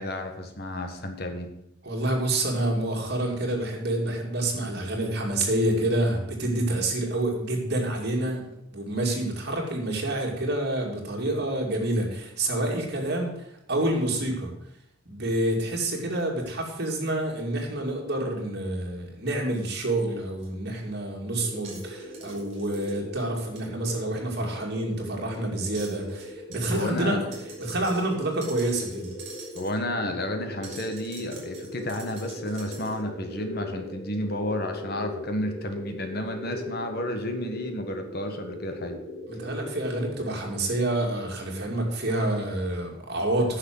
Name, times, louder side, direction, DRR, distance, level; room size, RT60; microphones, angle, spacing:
voice 1, 0.0-1.5 26.7-27.2 29.5-39.0, left 1 dB, 50° left, 5 dB, 1.4 m, -31 dB
voice 2, 1.8-8.4 8.7-14.5 15.1-27.2 27.6-29.2 39.3-43.6, right 1 dB, 50° right, 0 dB, 2.5 m, -28 dB
sound 1, 20.4-20.5 21.6-22.9 23.6-23.7 25.6-26.3 26.5-26.9 27.3-29.8 30.6-33.0, right 4 dB, 35° right, 4.8 m, -46 dB
sound 2, 21.4-40.4, left 1 dB, 15° left, 2.6 m, -40 dB
10.0 x 6.5 x 7.7 m, 0.81 s
head